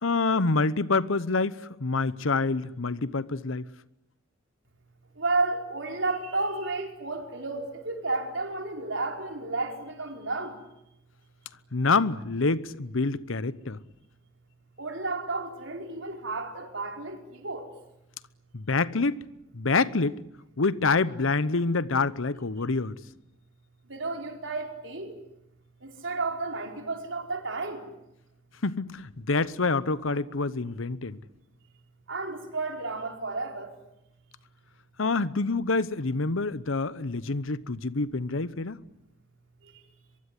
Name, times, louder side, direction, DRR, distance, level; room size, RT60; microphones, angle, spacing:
voice 1, 0.0-3.7 11.7-13.8 18.5-19.2 19.5-20.2 20.6-23.0 28.6-31.2 35.0-38.8, left 3 dB, 75° left, 0.9 m, -27 dB
voice 2, 5.2-10.5 14.8-17.7 23.9-25.1 25.8-27.8 32.1-33.7, right 3 dB, 65° right, 4.6 m, -32 dB
23.5 x 23.5 x 9.7 m
head